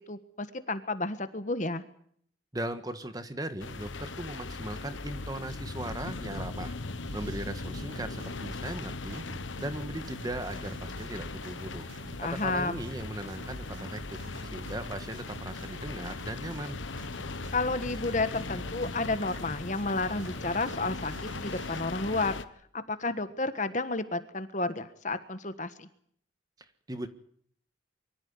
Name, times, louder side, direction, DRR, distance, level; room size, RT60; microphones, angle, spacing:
voice 1, 0.1-1.8 12.2-12.8 17.5-22.3 22.7-25.9, left 3 dB, 40° left, 11 dB, 1.4 m, -31 dB
voice 2, 2.5-6.7 7.1-9.2 9.6-11.8 12.2-14.2 14.5-16.8 26.6-27.1, right 1 dB, 20° right, 10 dB, 1.5 m, -38 dB
sound 1, 3.6-22.4, left 3 dB, 80° left, 1.2 m, -39 dB
sound 2, 7.0-21.8, right 2 dB, 80° right, 1.1 m, -48 dB
24.0 x 14.0 x 9.7 m, 0.64 s
head